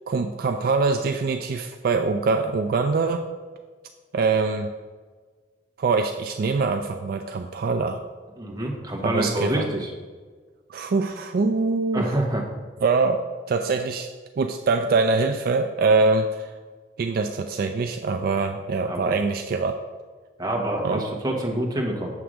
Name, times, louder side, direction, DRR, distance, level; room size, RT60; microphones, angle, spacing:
voice 1, 0.1-3.3 4.1-4.7 5.8-8.0 9.0-9.7 10.7-12.1 12.8-14.1 14.4-16.5 17.0-19.8 20.8-21.0, right 4 dB, 55° right, 6 dB, 0.3 m, -23 dB
voice 2, 8.4-9.9 11.9-12.4 18.9-19.2 20.4-22.1, right 1 dB, 25° right, 0 dB, 1.1 m, -26 dB
7.4 x 3.4 x 6.3 m, 1.5 s
head